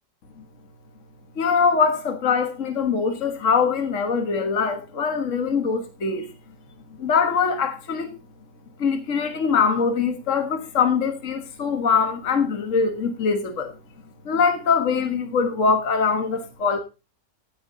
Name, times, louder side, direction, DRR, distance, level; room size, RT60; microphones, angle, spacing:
voice 1, 1.4-6.3 7.0-8.1 8.8-13.7 14.3-16.8, left 5 dB, 50° left, 1.8 m, -22 dB
12.5 x 10.5 x 3.9 m
omnidirectional pair, 1.8 m